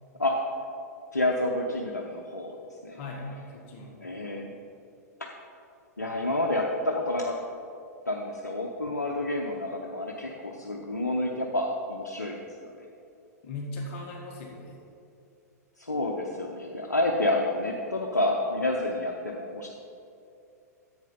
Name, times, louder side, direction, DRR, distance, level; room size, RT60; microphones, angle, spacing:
voice 1, 1.1-2.6 2.8-3.0 4.0-4.5 5.2-5.3 6.0-7.3 8.1-12.7 15.8-19.7, left 1 dB, 85° left, 0 dB, 0.9 m, -29 dB
voice 2, 2.9-4.0 13.4-14.8, left 2 dB, 45° left, -1 dB, 1.8 m, -38 dB
10.5 x 8.0 x 5.4 m, 2.5 s
figure-of-eight pair, 100°, 9 cm